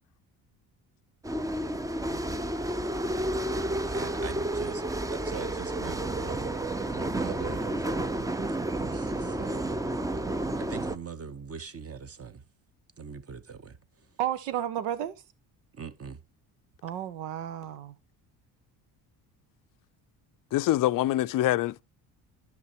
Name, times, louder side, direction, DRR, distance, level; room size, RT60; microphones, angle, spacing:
sound 1, 1.2-11.0, right 1 dB, 10° right, 0.5 m, -31 dB
voice 1, 3.9-4.8 5.1-8.3 8.8-9.7 10.5-12.4 13.0-14.1 15.7-16.2, right 6 dB, 30° right, 1.0 m, -42 dB
voice 2, 14.2-15.2 16.8-17.9, right 11 dB, 85° right, 1.0 m, -32 dB
voice 3, 20.5-21.8, left 14 dB, 45° left, 0.5 m, -25 dB
11.0 x 5.7 x 3.0 m
hypercardioid pair, 65°, 46 cm